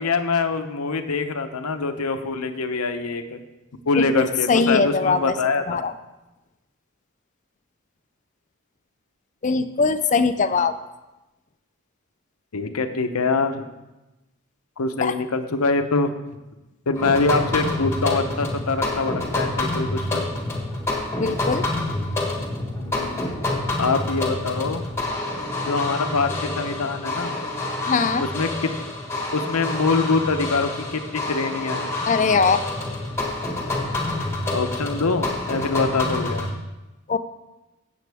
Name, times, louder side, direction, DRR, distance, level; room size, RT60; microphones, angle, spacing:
voice 1, 0.0-3.4 3.9-5.9 10.5-10.7 12.5-13.7 14.8-16.1 16.9-20.2 22.8-23.3 23.8-24.8 25.7-27.3 28.2-28.7 29.3-31.9 34.5-36.5, left 3 dB, 85° left, 8 dB, 0.8 m, -24 dB
voice 2, 4.0-5.2 5.7-5.9 9.4-10.7 15.0-15.1 21.2-21.6 27.9-28.2 32.1-32.6 37.1-37.2, left 4 dB, 35° left, 11 dB, 0.4 m, -21 dB
sound 1, 16.9-36.5, left 2 dB, 10° left, 1.4 m, -27 dB
16.0 x 7.1 x 3.5 m, 1.0 s
head